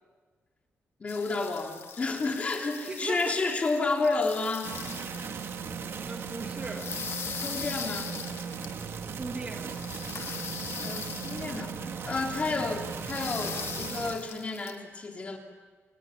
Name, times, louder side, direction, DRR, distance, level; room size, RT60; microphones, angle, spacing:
voice 1, 1.0-4.7 7.4-8.2 10.8-15.4, left 3 dB, 30° left, 2 dB, 3.1 m, -31 dB
sound 1, 1.1-5.3 6.5-8.8 9.6-11.6 12.3-12.4 13.0-14.7, left 7 dB, 60° left, 1.6 m, -40 dB
voice 2, 2.9-3.6 6.1-7.0 9.1-9.8 12.5-12.8, right 3 dB, 25° right, 4 dB, 2.0 m, -38 dB
sound 2, 4.6-14.2, right 6 dB, 60° right, 2.0 m, -37 dB
29.0 x 24.0 x 7.2 m, 1.4 s
wide cardioid pair, 180°, 5 cm